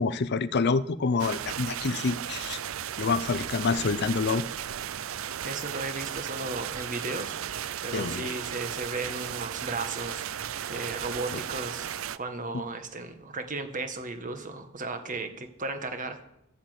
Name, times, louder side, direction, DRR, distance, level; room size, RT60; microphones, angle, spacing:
voice 1, 0.0-2.6 3.0-4.4 7.9-8.3 12.5-12.6, left 4 dB, 50° left, 16 dB, 0.6 m, -27 dB
sound 1, 1.2-12.2, right 10 dB, 70° right, 0.5 m, -35 dB
voice 2, 5.4-7.4 7.8-11.9 12.2-16.2, right 3 dB, 40° right, 7 dB, 1.5 m, -35 dB
13.5 x 8.4 x 8.0 m, 0.83 s
head